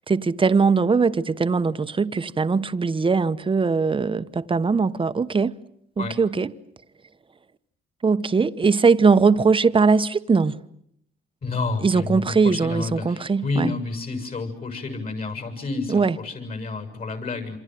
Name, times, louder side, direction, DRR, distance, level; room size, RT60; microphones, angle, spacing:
voice 1, 0.1-5.6 6.0-6.5 8.0-10.6 11.8-13.7 15.9-16.2, right 4 dB, 25° right, 1.1 m, -20 dB
voice 2, 11.4-17.6, left 3 dB, 45° left, 7.2 m, -30 dB
28.0 x 26.5 x 7.8 m
cardioid pair, 90°, 20 cm